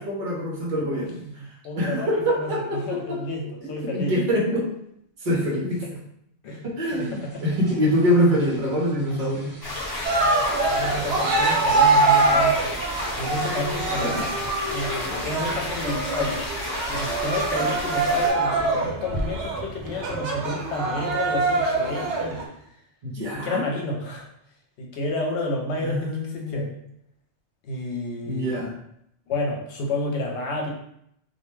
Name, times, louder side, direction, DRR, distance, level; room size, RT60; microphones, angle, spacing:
voice 1, 0.0-1.2 1.8-3.2 3.6-4.7 5.2-5.8 6.6-9.5 14.0-14.3 23.0-23.6 25.8-26.6 28.3-28.7, equal, 50° right, -4 dB, 0.8 m, -24 dB
voice 2, 0.9-4.1 5.3-5.5 5.8-6.0 6.4-7.6 8.5-8.6 10.7-12.8 13.2-14.4 14.7-16.4 16.9-22.4 23.3-24.3 24.8-26.7 27.6-28.5 29.3-30.7, left 2 dB, 75° left, 0 dB, 0.9 m, -31 dB
sound 1, 6.8-15.8 16.1-16.2 16.4-16.5 17.5-17.7 18.1-20.2, equal, 30° right, 1.0 m, -41 dB
sound 2, 9.6-18.3, left 1 dB, 25° left, 0.5 m, -32 dB
Cheering, 10.0-22.4, right 3 dB, 85° right, 0.9 m, -24 dB
2.4 x 2.2 x 3.0 m, 0.73 s
omnidirectional pair, 1.2 m